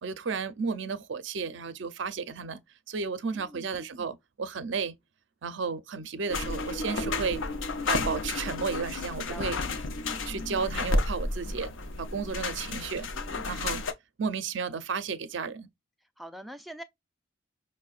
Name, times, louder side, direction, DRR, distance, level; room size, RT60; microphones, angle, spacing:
voice 1, 0.0-2.6 2.9-4.9 5.4-7.4 7.9-9.6 10.3-11.7 12.0-13.1 13.4-13.8 14.2-15.7, right 5 dB, 65° right, 0.5 m, -33 dB
voice 2, 3.3-3.7 9.3-9.7 13.1-13.5 16.2-16.8, equal, ahead, 0.3 m, -44 dB
sound 1, 6.3-13.9, left 3 dB, 75° left, 0.6 m, -32 dB
5.4 x 2.1 x 2.3 m
head